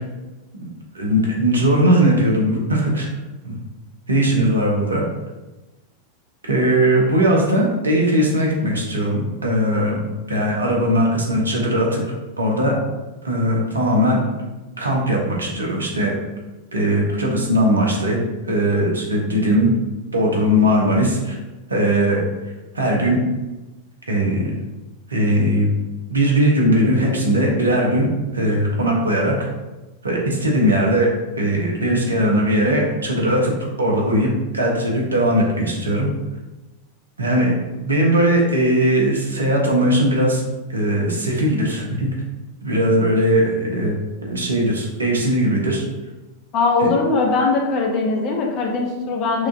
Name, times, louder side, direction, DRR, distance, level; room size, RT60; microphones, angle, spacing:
voice 1, 0.9-3.1 3.4-3.5 4.1-5.0 6.4-10.0 10.3-12.0 12.4-12.8 13.2-14.2 14.8-16.1 16.7-18.2 18.5-19.7 20.1-21.4 21.7-22.2 22.7-23.2 24.1-24.5 25.1-25.7 26.1-28.1 28.3-29.3 30.0-31.1 31.4-33.5 33.8-36.1 37.2-40.4 40.7-42.1 42.6-44.0 44.2-45.8 46.8-46.9, right 1 dB, 75° right, -1 dB, 0.9 m, -19 dB
voice 2, 46.5-49.5, left 3 dB, 40° left, 0 dB, 0.8 m, -20 dB
6.2 x 2.5 x 2.6 m, 1.1 s
figure-of-eight pair, 90°, 0 cm